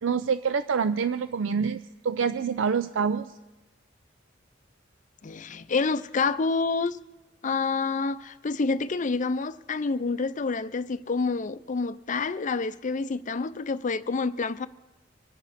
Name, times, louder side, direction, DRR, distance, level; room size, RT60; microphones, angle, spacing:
voice 1, 0.0-3.4, right 6 dB, 75° right, 0.4 m, -26 dB
voice 2, 5.2-7.0 7.4-14.7, left 4 dB, 40° left, 0.5 m, -28 dB
25.5 x 11.0 x 4.1 m
head